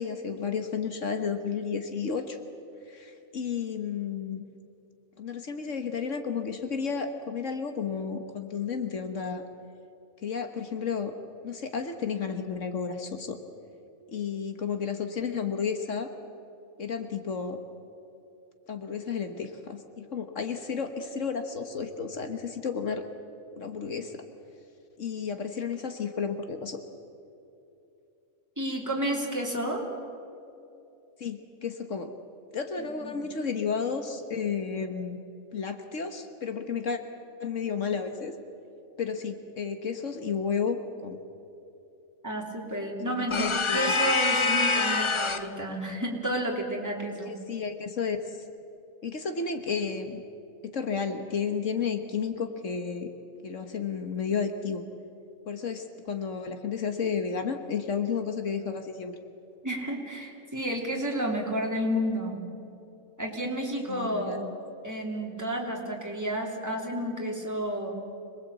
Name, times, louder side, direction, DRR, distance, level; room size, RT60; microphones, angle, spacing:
voice 1, 0.0-2.4 2.9-4.4 5.2-9.4 10.2-11.1 11.4-13.4 14.1-16.1 16.8-17.6 18.7-23.0 23.6-24.2 25.0-26.8 31.2-32.1 32.5-35.2 35.5-37.0 37.4-38.3 39.0-41.2 43.0-43.9 47.3-48.4 49.0-50.2 50.6-53.1 53.4-54.8 55.5-59.1 63.9-64.4, left 6 dB, 65° left, 7 dB, 1.6 m, -32 dB
voice 2, 28.6-29.8 32.8-33.2 42.2-47.4 59.6-62.4 63.2-64.4 64.8-67.9, right 1 dB, 15° right, -1 dB, 3.4 m, -31 dB
sound 1, 43.3-45.6, left 4 dB, 30° left, 0.6 m, -25 dB
26.0 x 20.0 x 8.2 m, 2.7 s
omnidirectional pair, 1.4 m